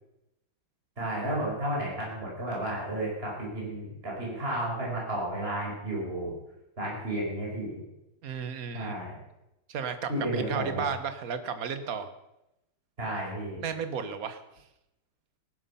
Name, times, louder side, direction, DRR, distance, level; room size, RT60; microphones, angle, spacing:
voice 1, 1.0-6.3 6.8-7.8 8.7-9.2 10.1-10.8 13.0-13.6, right 1 dB, 25° right, -3 dB, 5.3 m, -32 dB
voice 2, 8.2-8.9 9.7-12.1 13.6-14.4, right 6 dB, 45° right, 10 dB, 1.5 m, -33 dB
19.0 x 11.5 x 5.7 m, 0.89 s
omnidirectional pair, 2.4 m